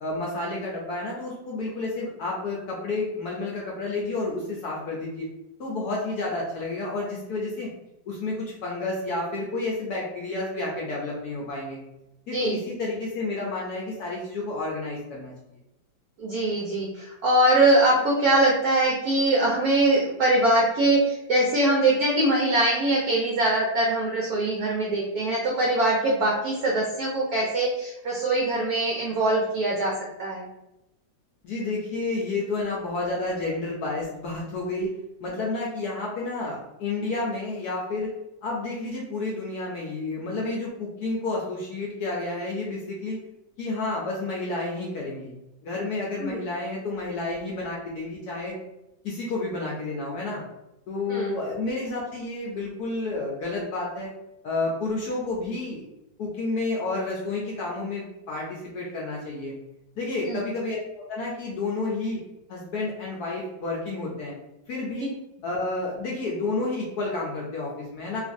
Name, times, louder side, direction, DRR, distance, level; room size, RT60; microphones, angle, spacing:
voice 1, 0.0-5.3 5.6-7.7 8.1-11.8 12.3-15.6 31.4-34.9 35.2-38.1 38.4-43.2 43.6-45.3 45.6-48.6 49.0-50.4 50.9-54.1 54.4-55.8 56.2-59.5 60.0-60.8 61.1-62.2 62.5-64.3 64.7-65.1 65.4-68.2, left 2 dB, 70° left, -3 dB, 1.0 m, -30 dB
voice 2, 16.2-29.9 30.2-30.4 46.2-46.4 51.1-51.3 60.2-60.4, right 1 dB, 70° right, -3 dB, 0.9 m, -22 dB
3.1 x 2.4 x 2.5 m, 0.91 s
omnidirectional pair, 2.0 m